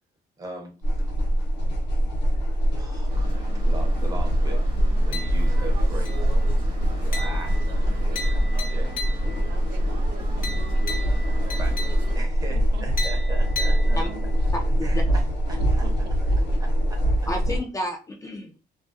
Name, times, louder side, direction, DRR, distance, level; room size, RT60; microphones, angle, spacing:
voice 1, 0.4-0.8 2.7-4.7 5.0-6.4 6.8-7.6 7.9-8.3 8.6-9.6 11.6-11.8 12.1-14.0 14.8-15.9 16.6-17.0, right 1 dB, 20° right, 2 dB, 0.6 m, -40 dB
sound 1, 0.8-17.6, equal, 90° left, 0.7 m, -23 dB
sound 2, 3.1-12.2, right 3 dB, 55° right, 1.0 m, -41 dB
sound 3, 5.1-5.7 6.0-6.5 7.1-9.5 10.4-12.3 13.0-14.4, left 2 dB, 60° left, 0.8 m, -36 dB
voice 2, 9.4-11.4 12.5-12.8 13.8-14.2 15.5-15.9 16.3-16.6, right 7 dB, 70° right, 3 dB, 0.5 m, -44 dB
voice 3, 14.5-15.0 17.3-18.6, left 1 dB, 20° left, 1 dB, 0.3 m, -31 dB
2.3 x 2.3 x 2.5 m, 0.33 s
cardioid pair, 165°, 18 cm